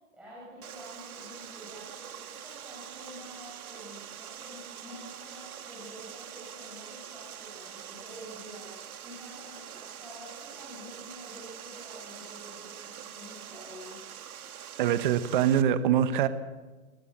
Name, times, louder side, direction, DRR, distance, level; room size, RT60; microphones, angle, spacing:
voice 1, 0.1-14.0, equal, 5° right, -9 dB, 6.8 m, -48 dB
Water, 0.6-15.6, right 9 dB, 85° right, 1.9 m, -44 dB
voice 2, 14.8-16.3, right 10 dB, 35° right, 11 dB, 1.1 m, -24 dB
21.5 x 21.0 x 7.7 m, 1.3 s
hypercardioid pair, 165°, 42 cm